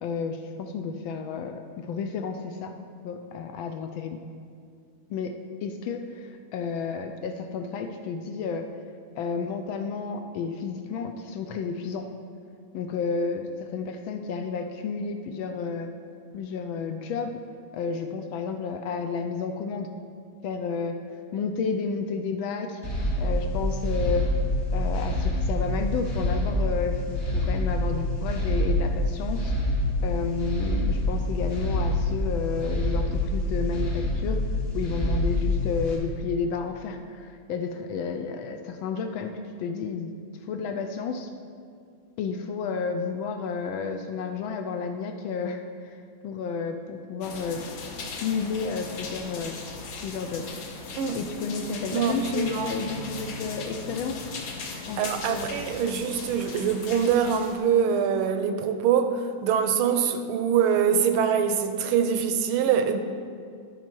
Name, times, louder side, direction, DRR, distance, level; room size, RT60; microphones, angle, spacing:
voice 1, 0.0-2.7 3.0-4.2 5.1-5.3 5.6-8.7 9.2-12.1 12.7-15.9 16.3-17.4 17.7-19.9 20.4-21.0 21.3-22.8 23.2-24.3 24.7-29.5 30.0-34.4 34.7-41.3 42.2-47.6 48.2-49.6 50.0-50.5 51.1-54.3 54.9-55.6, left 5 dB, 75° left, 6 dB, 1.2 m, -31 dB
sound 1, 22.8-36.0, left 1 dB, 35° left, 1.1 m, -26 dB
sound 2, 47.2-57.6, left 3 dB, 60° left, 0.9 m, -38 dB
voice 2, 51.9-52.7 55.0-63.0, right 7 dB, 80° right, 7 dB, 1.4 m, -24 dB
12.0 x 5.5 x 4.5 m, 2.3 s
omnidirectional pair, 2.4 m